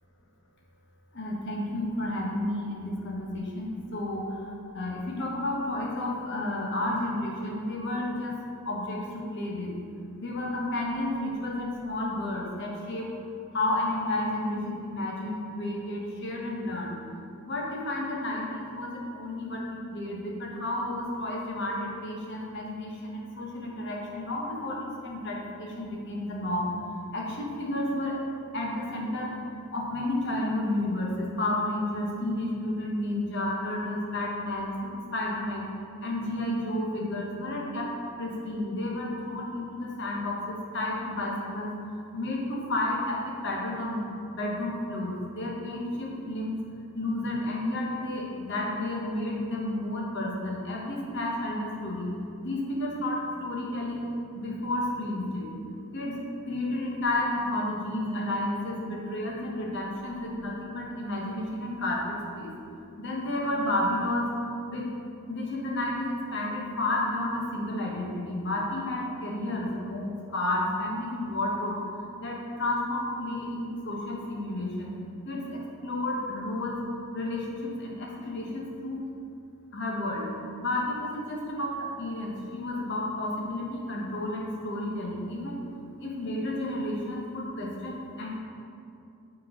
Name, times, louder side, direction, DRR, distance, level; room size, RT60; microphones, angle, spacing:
voice 1, 1.1-8.4 8.6-9.7 10.2-13.1 13.5-16.9 17.4-26.7 27.1-28.2 28.5-29.4 29.7-35.7 36.0-41.7 42.1-44.0 44.3-46.6 46.9-52.1 52.4-55.5 55.9-62.5 63.0-64.3 64.7-64.9 65.3-71.8 72.2-74.9 75.2-76.8 77.1-79.0 79.7-80.3 80.6-85.6 86.0-88.4, left 1 dB, 55° left, -2 dB, 1.0 m, -31 dB
7.3 x 4.2 x 3.7 m, 2.6 s
head